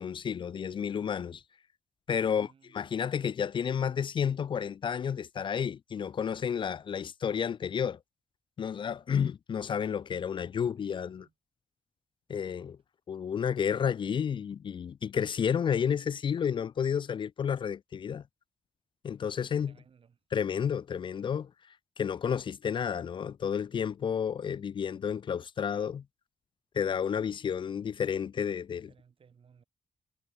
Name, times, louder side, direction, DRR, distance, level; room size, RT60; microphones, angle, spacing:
voice 1, 0.0-1.4 2.1-8.0 8.6-11.2 12.3-12.8 13.1-18.2 19.0-19.7 20.3-21.5 22.0-26.0 26.7-28.9, left 7 dB, 50° left, 0.4 m, -31 dB
voice 2, 2.2-2.9 10.5-11.3 19.3-20.2 28.9-29.6, right 6 dB, 55° right, 5.6 m, -62 dB
cardioid pair, 105°, 11 cm